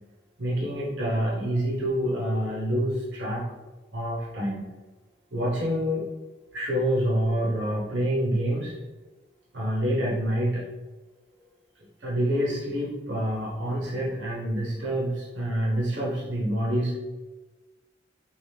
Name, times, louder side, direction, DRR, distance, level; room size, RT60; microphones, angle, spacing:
voice 1, 0.4-3.5 3.9-4.6 5.3-6.1 6.5-8.8 9.5-10.6 12.0-17.0, equal, 85° right, -3 dB, 0.8 m, -27 dB
3.6 x 2.6 x 3.2 m, 1.2 s
head